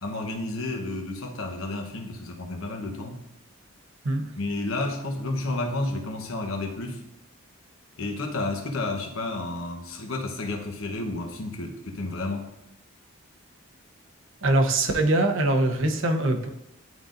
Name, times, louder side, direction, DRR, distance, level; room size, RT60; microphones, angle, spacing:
voice 1, 0.0-3.2 4.4-7.0 8.0-12.5, left 2 dB, 75° left, 3 dB, 1.0 m, -31 dB
voice 2, 14.4-16.5, right 2 dB, 65° right, 5 dB, 0.7 m, -23 dB
11.0 x 3.9 x 2.6 m, 0.82 s
head